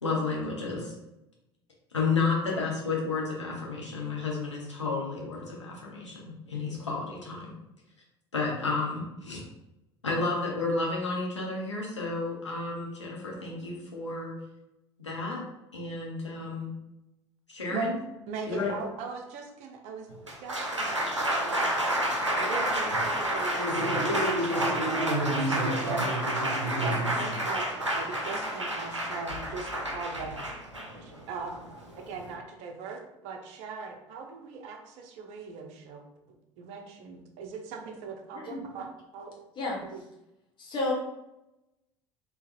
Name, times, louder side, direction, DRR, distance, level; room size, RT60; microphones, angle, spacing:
voice 1, 0.0-0.9 1.9-7.5 8.3-9.4 10.0-14.3 15.0-15.4 15.7-16.7 17.5-17.9 18.5-18.7, left 3 dB, 85° left, -3 dB, 0.8 m, -31 dB
voice 2, 18.3-20.1 20.4-21.7 22.3-23.6 23.9-26.2 26.8-30.3 31.0-31.7 31.9-36.0 36.6-39.3 39.7-40.0, right 4 dB, 50° right, 4 dB, 0.6 m, -40 dB
Applause, 20.1-32.3, right 1 dB, 90° right, 0.5 m, -29 dB
voice 3, 40.6-40.9, left 3 dB, 30° left, -3 dB, 1.1 m, -31 dB
3.9 x 2.8 x 2.4 m, 0.90 s
figure-of-eight pair, 65°, 15 cm